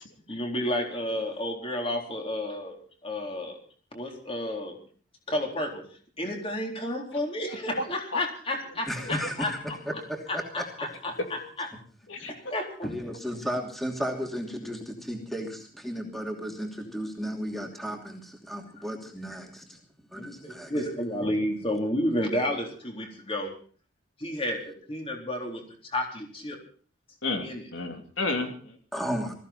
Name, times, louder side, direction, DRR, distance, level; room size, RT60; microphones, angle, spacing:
voice 1, 0.3-2.8 3.0-3.6 3.9-4.8 5.3-5.8 6.2-9.5 9.9-10.0 10.3-11.7 12.3-12.9 18.8-18.9 20.1-23.5 24.2-26.6 27.4-27.7, left 1 dB, 30° left, 1 dB, 3.8 m, -31 dB
voice 2, 8.9-9.6 10.1-10.6 12.2-12.3 12.8-19.8 20.1-20.7 28.9-29.4, equal, ahead, 1 dB, 2.9 m, -34 dB
voice 3, 27.2-28.8, left 3 dB, 75° left, 4 dB, 2.9 m, -31 dB
21.0 x 15.5 x 4.3 m, 0.42 s
head